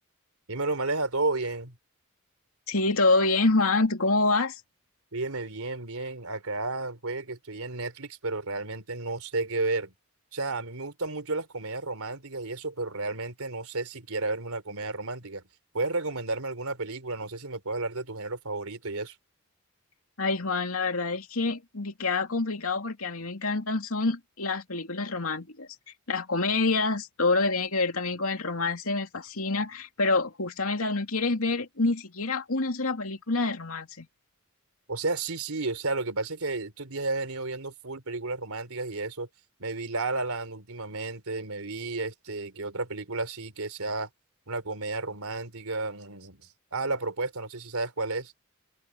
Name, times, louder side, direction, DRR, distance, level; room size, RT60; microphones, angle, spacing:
voice 1, 0.5-1.8 5.1-9.9 10.3-15.4 15.7-19.2 34.9-39.3 39.6-44.1 44.5-48.3, right 3 dB, 80° right, 3.5 m, -32 dB
voice 2, 2.7-4.6 20.2-25.7 26.1-34.1, left 3 dB, 75° left, 2.7 m, -27 dB
head